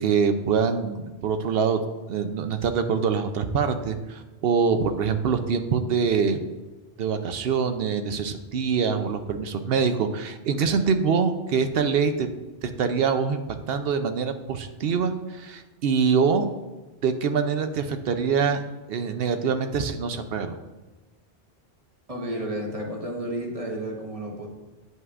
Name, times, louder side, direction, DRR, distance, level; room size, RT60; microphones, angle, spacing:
voice 1, 0.0-1.8 2.1-6.5 7.0-12.3 12.6-13.4 13.7-16.5 17.0-18.6 18.9-20.6, right 6 dB, 65° right, 8 dB, 0.7 m, -24 dB
voice 2, 22.1-24.5, right 1 dB, 35° right, 0 dB, 1.2 m, -32 dB
9.3 x 5.4 x 2.4 m, 1.2 s
omnidirectional pair, 1.2 m